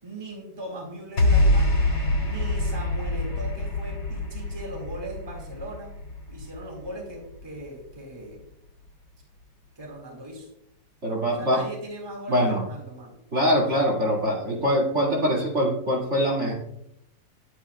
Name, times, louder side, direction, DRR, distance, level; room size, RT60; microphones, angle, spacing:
voice 1, 0.0-1.8 2.2-5.9 6.3-8.4 9.8-10.5 11.4-13.1, right 1 dB, 15° right, -1 dB, 2.0 m, -39 dB
sound 1, 1.2-7.6, left 1 dB, 75° left, 2.5 m, -25 dB
voice 2, 11.0-11.6 12.3-12.6 13.3-16.5, equal, 40° right, -4 dB, 2.4 m, -23 dB
11.5 x 8.4 x 2.3 m, 0.77 s
omnidirectional pair, 2.0 m